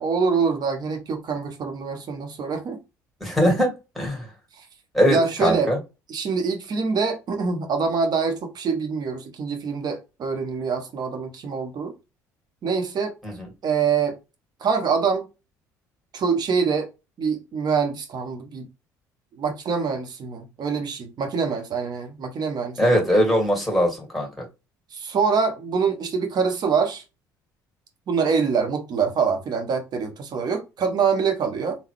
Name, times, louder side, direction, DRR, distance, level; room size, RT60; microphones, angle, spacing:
voice 1, 0.0-2.8 4.6-4.7 5.1-5.7 6.1-11.9 12.6-13.1 13.6-14.2 14.6-15.2 16.1-16.9 17.2-18.7 19.4-23.0 24.9-27.0 28.1-31.8, right 5 dB, 45° right, 1.0 m, -25 dB
voice 2, 3.2-4.3 4.9-5.8 13.2-13.3 22.8-24.4, equal, ahead, 2.1 m, -21 dB
3.7 x 2.2 x 3.2 m
hypercardioid pair, 55°, 9 cm